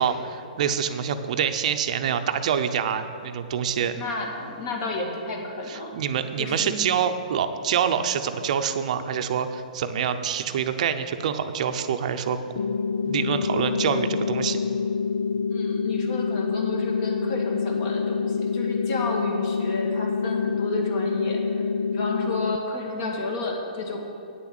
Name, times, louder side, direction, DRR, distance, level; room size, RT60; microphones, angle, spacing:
voice 1, 0.0-4.0 5.7-12.4 13.0-14.6, right 8 dB, 55° right, 9 dB, 0.7 m, -26 dB
voice 2, 4.0-6.0 6.4-6.9 15.5-24.0, left 2 dB, 40° left, 1 dB, 2.1 m, -32 dB
sound 1, 12.6-22.6, left 5 dB, 75° left, 0.4 m, -26 dB
9.1 x 7.1 x 7.9 m, 2.7 s
hypercardioid pair, 145°, 4 cm